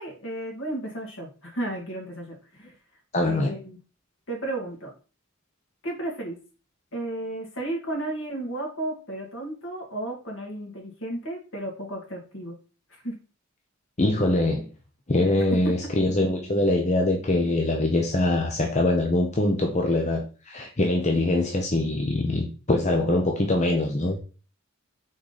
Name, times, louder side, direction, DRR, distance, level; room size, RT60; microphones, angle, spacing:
voice 1, 0.0-2.7 3.3-3.8 4.3-4.9 5.8-6.4 6.9-12.6 13.0-13.2 15.6-15.9, right 1 dB, 65° left, 2.6 m, -33 dB
voice 2, 3.1-3.5 14.0-14.7 15.1-24.2, left 2 dB, 35° left, 0.9 m, -23 dB
6.2 x 4.6 x 4.1 m
head